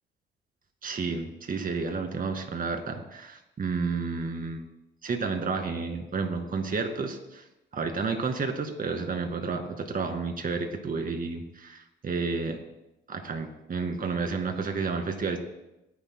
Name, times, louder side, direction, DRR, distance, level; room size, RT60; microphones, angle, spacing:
voice 1, 0.8-4.6 5.0-7.4 7.7-9.6 9.9-12.6 13.1-15.4, right 4 dB, 45° right, 4 dB, 2.1 m, -31 dB
26.5 x 10.5 x 2.2 m, 0.93 s
cardioid pair, 90°, 20 cm